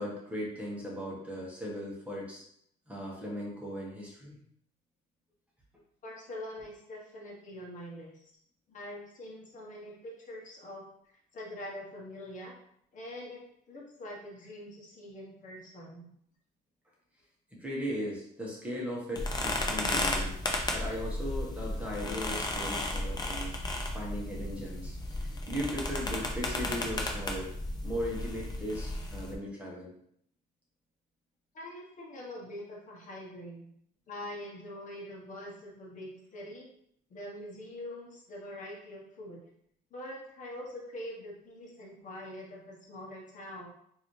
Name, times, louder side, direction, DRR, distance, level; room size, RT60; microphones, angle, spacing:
voice 1, 0.0-2.4 2.9-4.4 17.6-20.4 20.7-23.6 23.9-27.5 27.8-29.9, equal, 10° right, -4 dB, 1.2 m, -37 dB
voice 2, 6.0-8.3 8.7-10.8 11.3-12.5 12.9-16.1 31.5-33.7 34.1-36.7 37.1-39.5 39.9-43.7, left 1 dB, 50° left, -2 dB, 1.1 m, -44 dB
sound 1, 19.2-29.3, left 2 dB, 25° left, 0.7 m, -34 dB
3.9 x 2.7 x 3.2 m, 0.69 s
cardioid pair, 110°, 17 cm